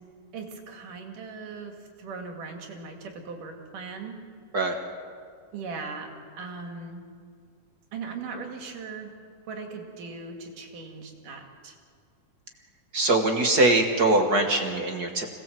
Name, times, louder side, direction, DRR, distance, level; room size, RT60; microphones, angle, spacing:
voice 1, 0.3-4.2 5.5-6.1 6.4-7.0 7.9-9.1 9.5-11.8, right 4 dB, 80° right, 3 dB, 3.9 m, -39 dB
voice 2, 12.9-15.3, right 2 dB, 40° right, 4 dB, 1.4 m, -22 dB
26.0 x 19.0 x 7.6 m, 2.2 s
omnidirectional pair, 3.6 m